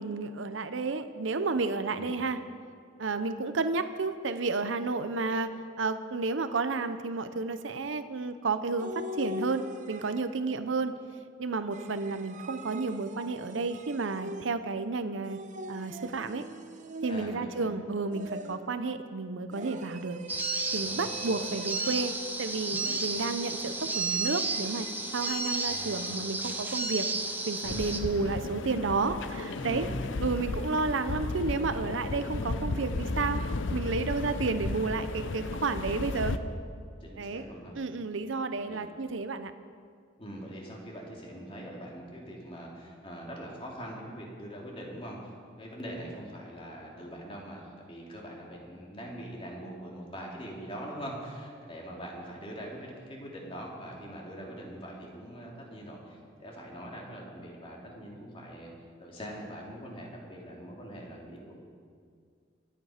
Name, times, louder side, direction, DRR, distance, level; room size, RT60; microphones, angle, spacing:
voice 1, 0.0-2.4 3.0-5.5 5.8-10.9 11.4-15.4 15.7-16.4 17.0-20.2 20.7-22.1 22.4-24.9 25.1-27.1 27.5-29.9 30.2-33.4 33.7-36.4 37.2-37.5 37.7-39.5, right 3 dB, 75° right, 10 dB, 0.7 m, -31 dB
sound 1, 8.8-10.5 11.7-14.8 15.2-17.6 18.1-18.8 19.5-22.3 22.7-26.2, equal, 40° right, 0.7 m, -43 dB
voice 2, 17.1-17.7 20.8-21.2 25.6-26.1 29.5-30.6 37.0-37.8 38.6-38.8 40.2-58.7 59.0-61.6, equal, 30° left, -2 dB, 2.8 m, -42 dB
sound 2, 20.3-28.0, right 3 dB, 10° right, 0.8 m, -33 dB
sound 3, 27.6-36.4, left 2 dB, 75° left, 0.7 m, -34 dB
23.5 x 9.0 x 5.0 m, 2.1 s
head